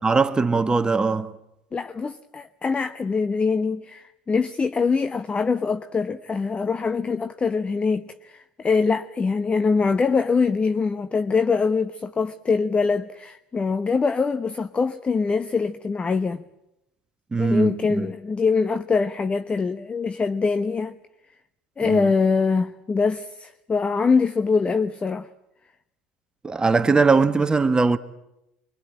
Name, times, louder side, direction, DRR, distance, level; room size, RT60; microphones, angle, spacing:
voice 1, 0.0-1.3 17.3-18.1 21.8-22.1 26.4-28.0, right 4 dB, 15° right, 1.5 m, -20 dB
voice 2, 1.7-16.4 17.4-20.9 21.8-25.3, left 4 dB, 25° left, 0.9 m, -23 dB
25.0 x 23.5 x 8.9 m
hypercardioid pair, 80°, 5 cm